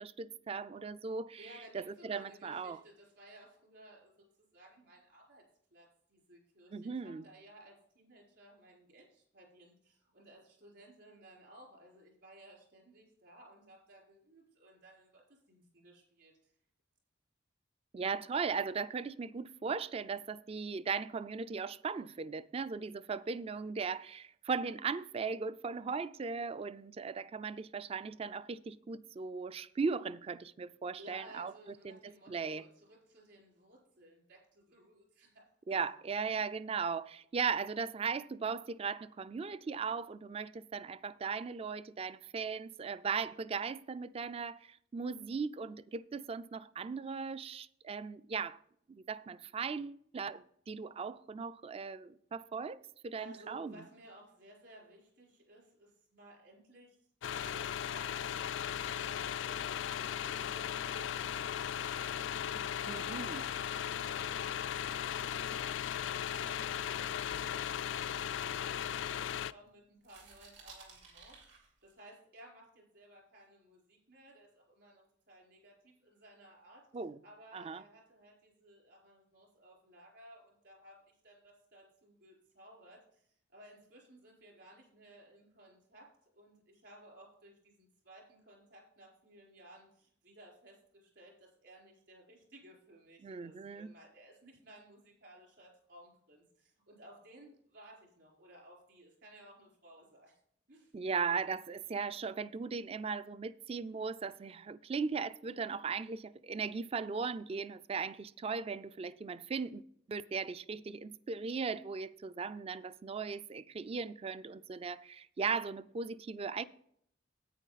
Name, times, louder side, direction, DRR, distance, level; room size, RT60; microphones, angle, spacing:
voice 1, 0.0-1.4 1.7-2.8 6.7-7.2 17.9-31.5 31.8-32.0 32.3-32.6 35.7-48.6 48.9-53.8 62.9-63.4 76.9-77.2 77.5-77.8 93.2-93.9 100.9-109.8 110.1-116.7, right 5 dB, 30° right, 0.3 m, -38 dB
voice 2, 1.4-5.4 5.7-16.5 31.0-35.9 53.2-57.0 57.2-62.1 62.4-65.6 65.9-68.9 69.1-69.2 69.5-76.9 77.2-86.1 86.3-100.4 100.7-100.9, right 1 dB, 65° right, 4.5 m, -58 dB
sound 1, 57.2-69.5, left 9 dB, 75° left, 0.4 m, -37 dB
sound 2, 57.3-61.9 62.2-66.4 66.8-68.0 68.5-69.7 70.0-72.0, right 4 dB, 80° right, 3.6 m, -62 dB
10.0 x 9.0 x 4.1 m
head